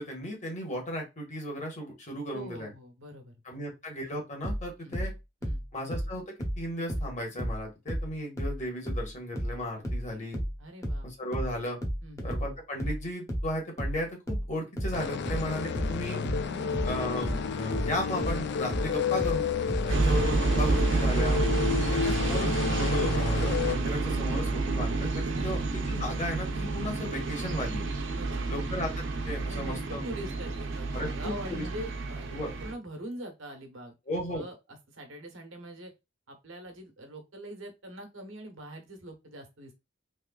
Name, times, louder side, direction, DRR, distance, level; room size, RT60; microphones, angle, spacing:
voice 1, 0.0-2.7 3.4-5.1 5.7-6.2 6.6-10.4 11.0-11.8 12.2-16.2 16.8-19.4 19.9-21.4 21.8-22.5 22.7-25.6 25.9-27.9 28.5-30.0 30.9-31.7 32.3-32.5 34.1-34.4, equal, 40° left, 0 dB, 1.4 m, -35 dB
voice 2, 2.3-3.3 4.8-5.0 5.4-5.6 10.6-11.1 12.0-12.3 16.4-16.8 19.8-20.1 21.7-22.2 25.3-25.7 28.1-28.7 29.5-33.9 34.3-35.9 36.3-39.7, right 1 dB, 90° right, 4 dB, 1.1 m, -43 dB
sound 1, 4.4-7.6 7.9-20.9, equal, 15° left, 0.8 m, -33 dB
sound 2, 14.9-23.8, left 6 dB, 60° left, 0.4 m, -31 dB
sound 3, 19.9-32.7, right 3 dB, 70° right, 0.8 m, -29 dB
3.5 x 3.1 x 2.4 m, 0.23 s
head